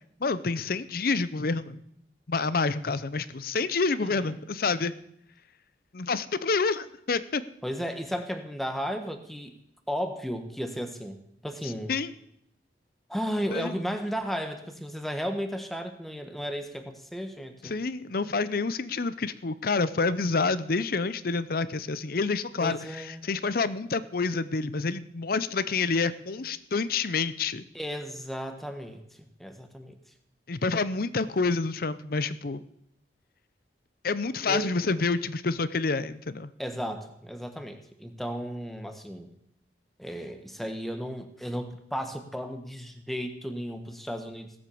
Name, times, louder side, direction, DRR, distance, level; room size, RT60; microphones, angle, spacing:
voice 1, 0.2-1.8 2.3-4.9 5.9-7.4 11.6-12.1 13.5-13.7 17.6-22.8 23.2-27.6 30.5-32.6 34.0-36.5, left 4 dB, 50° left, 15 dB, 0.6 m, -28 dB
voice 2, 4.0-4.4 7.6-9.5 9.9-11.2 11.4-11.9 13.1-17.7 22.6-23.2 27.7-30.0 34.5-34.7 36.6-39.3 40.0-44.5, equal, ahead, 6 dB, 1.2 m, -34 dB
17.0 x 8.1 x 7.0 m, 0.74 s
head